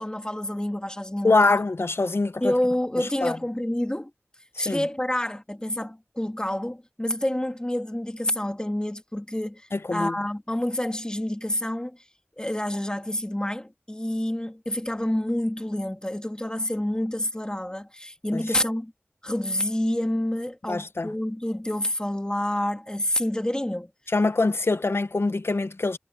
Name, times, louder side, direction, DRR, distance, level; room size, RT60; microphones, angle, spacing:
voice 1, 0.0-1.6 2.4-4.1 4.6-12.0 12.4-18.9 19.2-23.9 24.7-24.8, left 1 dB, 20° left, 2.2 m, -28 dB
voice 2, 1.2-2.5 3.0-3.3 4.6-4.8 9.7-10.1 18.3-18.4 20.7-21.1 24.1-26.0, left 3 dB, 70° left, 0.7 m, -24 dB
wide cardioid pair, 50°, 4 cm